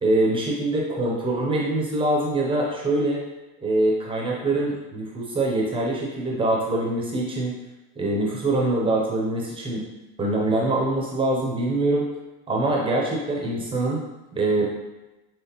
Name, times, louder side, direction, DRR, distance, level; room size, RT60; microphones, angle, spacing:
voice 1, 0.0-3.2 3.6-7.6 8.0-9.8 10.2-12.0 12.5-14.0 14.4-14.7, right 2 dB, 10° right, -3 dB, 0.3 m, -24 dB
5.9 x 3.1 x 2.8 m, 1.1 s
supercardioid pair, 140°, 49 cm